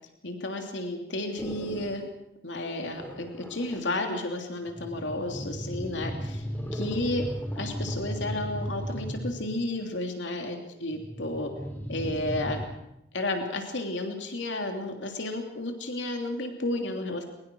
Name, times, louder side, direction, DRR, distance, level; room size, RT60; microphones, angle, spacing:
voice 1, 0.2-2.0 2.4-6.4 6.7-7.2 7.5-11.5 11.9-12.6 13.1-17.2, left 1 dB, 75° left, 4 dB, 3.0 m, -32 dB
sound 1, 1.4-2.0 2.9-3.9 4.7-9.6 10.9-12.7, equal, 10° left, 3.4 m, -36 dB
22.0 x 21.5 x 6.3 m, 0.87 s
head